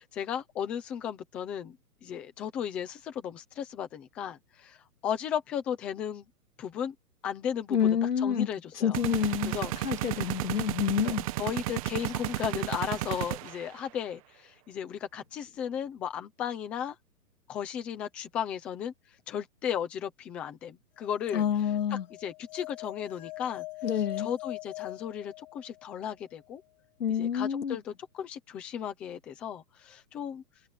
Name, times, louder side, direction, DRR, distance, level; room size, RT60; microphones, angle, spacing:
voice 1, 0.0-1.8 2.0-4.8 5.0-6.3 6.6-6.9 7.2-9.0 9.5-9.7 11.0-17.0 17.5-18.9 19.3-21.4 21.9-23.7 24.2-26.6 27.1-30.4, left 9 dB, 5° left, 0.5 m, -35 dB
voice 2, 7.7-8.5 8.8-11.3 21.3-22.1 23.8-24.3 27.0-27.8, left 8 dB, 90° left, 2.4 m, -28 dB
sound 1, 8.9-13.8, right 17 dB, 25° right, 1.1 m, -33 dB
sound 2, 21.0-25.9, left 21 dB, 30° left, 1.4 m, -42 dB
hypercardioid pair, 160°, 46 cm